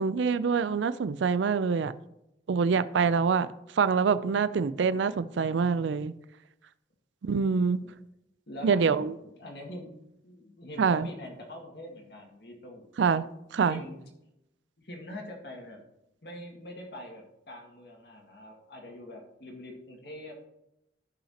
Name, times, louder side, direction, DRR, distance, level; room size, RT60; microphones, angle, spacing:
voice 1, 0.0-1.9 2.5-3.5 3.8-6.1 7.2-7.8 8.6-9.1 10.8-11.1 13.0-13.8, right 5 dB, 80° right, 0.4 m, -25 dB
voice 2, 8.5-9.9 10.2-12.8 13.6-14.0 14.8-15.8 16.2-20.5, left 1 dB, 60° left, 2.0 m, -44 dB
14.0 x 5.7 x 2.9 m
head